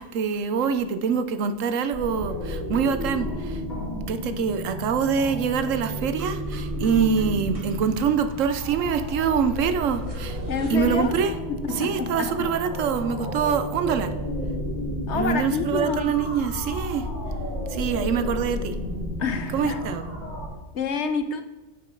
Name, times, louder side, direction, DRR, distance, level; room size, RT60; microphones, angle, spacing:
voice 1, 0.0-3.6 4.1-10.4 10.7-11.3 11.8-14.1 15.1-17.1 17.7-18.8 19.5-20.0, right 6 dB, 80° right, 10 dB, 1.1 m, -25 dB
sound 1, 1.9-20.5, equal, 35° left, 3.4 m, -32 dB
sound 2, 5.4-11.1, right 2 dB, 30° right, 1.4 m, -51 dB
voice 2, 10.5-11.2 11.5-12.3 15.1-16.2 17.9-18.0 19.2-19.9 20.7-21.4, left 5 dB, 65° left, 8 dB, 1.1 m, -28 dB
8.4 x 5.9 x 4.5 m, 1.1 s
omnidirectional pair, 1.3 m